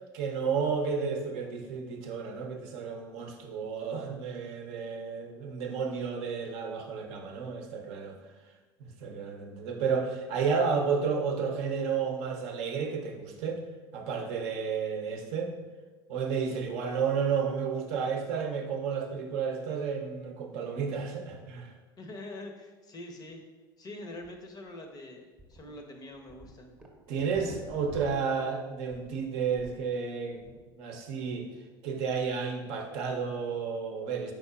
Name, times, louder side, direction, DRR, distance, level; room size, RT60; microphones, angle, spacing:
voice 1, 0.1-8.2 8.8-13.6 13.9-15.5 16.1-21.7 27.1-30.5 30.8-31.5 31.8-34.3, right 6 dB, 60° right, 3 dB, 0.6 m, -32 dB
voice 2, 22.0-23.4 23.8-26.8 27.1-27.5, left 2 dB, 30° left, 4 dB, 0.6 m, -45 dB
sound 1, 24.2-24.3 24.7-24.8 25.4-25.6 26.0-29.9 30.2-30.6, right 1 dB, 10° right, 0.7 m, -49 dB
4.7 x 4.1 x 2.3 m, 1.2 s
hypercardioid pair, 75°, 13 cm